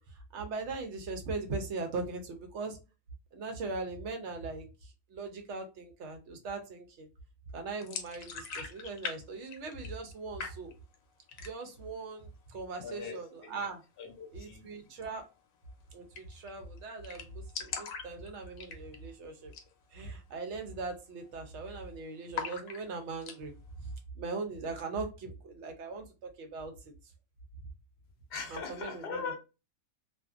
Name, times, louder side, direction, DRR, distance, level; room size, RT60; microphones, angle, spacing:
voice 1, 0.1-2.8 3.3-7.1 7.5-10.7 11.4-13.8 14.3-15.2 15.9-19.5 19.9-23.5 23.8-26.9 28.5-29.2, right 3 dB, 65° right, 0.9 m, -40 dB
sound 1, 7.8-9.2 9.4-10.1 10.4-11.0 11.3-11.8 12.2-12.3 12.6-13.2 14.9-15.1 15.4-15.5 15.7-15.8 16.1-16.5 16.8-16.9 17.0-19.1 19.4-19.7 20.1-20.2 20.7-21.0 21.2-21.8 22.3-23.4, left 6 dB, 85° left, 1.0 m, -41 dB
voice 2, 12.8-13.5 14.0-15.2 28.3-29.4, left 5 dB, 50° left, 0.8 m, -41 dB
2.6 x 2.4 x 2.3 m
omnidirectional pair, 1.4 m